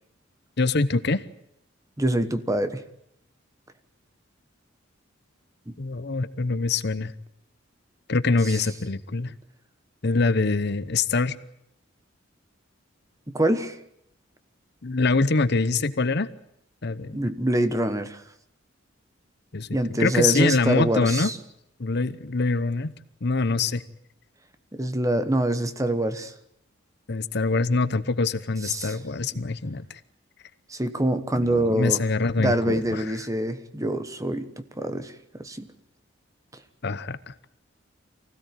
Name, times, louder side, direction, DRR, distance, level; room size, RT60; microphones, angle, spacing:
voice 1, 0.6-1.2 5.8-7.1 8.1-9.3 10.0-11.4 14.8-16.3 16.8-17.3 19.5-21.3 21.8-22.9 23.2-23.8 27.1-30.0 31.4-33.1 36.8-37.3, left 3 dB, 55° left, 14 dB, 0.9 m, -24 dB
voice 2, 2.0-2.8 5.7-5.8 13.3-13.8 17.1-18.2 19.7-21.4 24.7-26.3 28.6-29.0 30.7-32.0 32.4-35.7, right 1 dB, 15° right, 11 dB, 1.2 m, -25 dB
24.5 x 16.5 x 9.1 m, 0.76 s
head